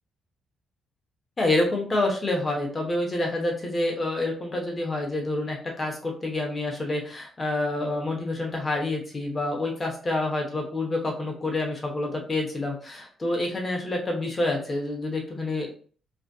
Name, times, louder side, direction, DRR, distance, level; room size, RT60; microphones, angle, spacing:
voice 1, 1.4-15.7, left 2 dB, 35° left, 0 dB, 0.9 m, -28 dB
2.6 x 2.4 x 2.2 m, 0.42 s
supercardioid pair, 60°, 0 cm